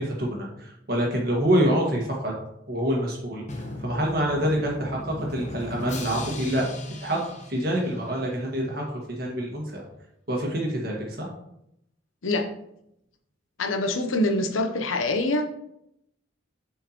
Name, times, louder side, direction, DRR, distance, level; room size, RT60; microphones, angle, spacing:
voice 1, 0.0-2.3 2.7-3.4 3.8-6.7 7.0-7.2 7.5-9.8 10.3-11.3, equal, 50° right, -1 dB, 1.7 m, -26 dB
Drum, 3.5-8.3, left 1 dB, 35° left, 0.8 m, -37 dB
voice 2, 13.6-15.5, left 2 dB, 90° left, 5 dB, 0.8 m, -25 dB
7.9 x 4.7 x 3.0 m, 0.78 s
head